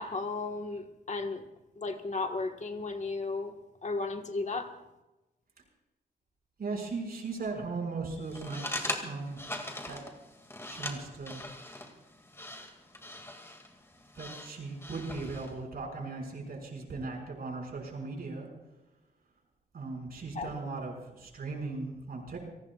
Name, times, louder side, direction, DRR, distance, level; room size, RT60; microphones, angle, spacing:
voice 1, 0.0-1.4 1.8-3.5 3.8-4.7 20.3-20.6, left 3 dB, 45° left, 4 dB, 1.5 m, -34 dB
voice 2, 6.6-9.4 9.8-10.0 10.7-11.4 14.2-18.5 19.7-22.4, right 3 dB, 60° right, 1 dB, 5.7 m, -38 dB
sound 1, 8.2-15.6, left 1 dB, 15° left, 2.3 m, -41 dB
30.0 x 18.5 x 2.4 m, 1.0 s
wide cardioid pair, 125°, 17 cm